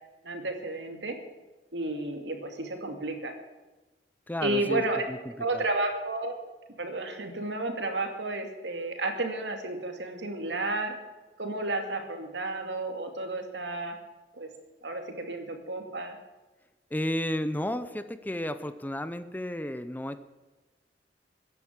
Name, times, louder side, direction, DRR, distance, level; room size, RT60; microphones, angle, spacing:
voice 1, 0.2-1.2 1.7-3.4 4.4-5.0 5.4-6.3 6.8-10.9 11.4-14.0 14.4-14.5 14.8-16.2, right 2 dB, 85° right, 5 dB, 2.5 m, -32 dB
voice 2, 4.3-5.6 16.9-20.2, left 1 dB, 10° left, 12 dB, 0.6 m, -33 dB
15.0 x 10.5 x 7.4 m, 1.2 s
head